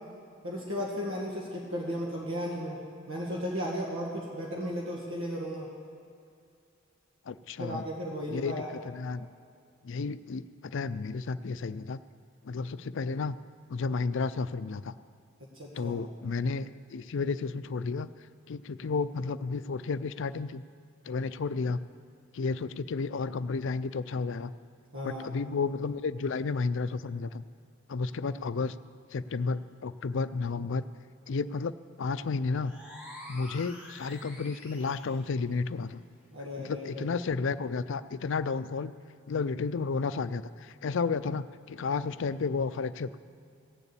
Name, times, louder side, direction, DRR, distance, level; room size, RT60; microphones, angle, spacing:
voice 1, 0.4-2.8 3.1-5.7 7.6-8.7 15.5-15.9 24.9-25.2 36.3-37.1, equal, 75° right, -3 dB, 1.9 m, -35 dB
voice 2, 7.3-7.8 8.3-9.3 9.8-12.0 12.4-13.4 13.7-14.9 15.8-18.1 18.5-20.6 21.1-21.8 22.3-24.5 25.0-27.4 27.9-28.7 29.1-30.8 31.3-32.7 33.3-36.0 36.6-38.9 39.3-43.2, left 4 dB, 65° left, 14 dB, 0.5 m, -32 dB
sound 1, 32.6-35.3, left 1 dB, 5° right, 2.4 m, -47 dB
16.5 x 7.0 x 8.3 m, 2.5 s
head